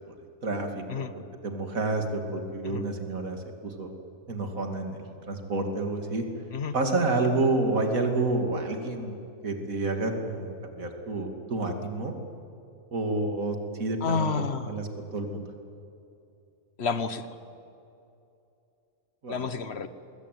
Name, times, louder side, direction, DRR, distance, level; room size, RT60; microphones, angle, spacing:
voice 1, 0.4-1.0 1.4-3.9 4.3-6.2 6.7-9.2 9.4-12.1 12.9-15.4 19.2-19.5, right 2 dB, 80° right, 4 dB, 3.0 m, -29 dB
voice 2, 14.0-14.8 16.8-17.3 19.3-19.9, left 5 dB, 50° left, 12 dB, 1.4 m, -30 dB
25.5 x 21.0 x 9.3 m, 2.7 s
omnidirectional pair, 1.4 m